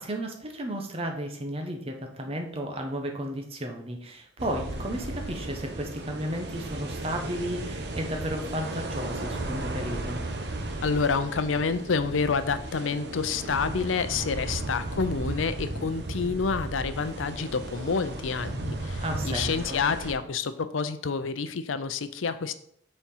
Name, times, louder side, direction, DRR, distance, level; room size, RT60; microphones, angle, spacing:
voice 1, 0.0-10.2 19.0-19.8, equal, 30° right, 3 dB, 1.1 m, -33 dB
sound 1, 4.4-20.1, right 2 dB, 60° right, 1.0 m, -35 dB
voice 2, 10.8-22.5, left 5 dB, 90° left, 12 dB, 0.6 m, -28 dB
7.1 x 4.4 x 5.5 m, 0.67 s
head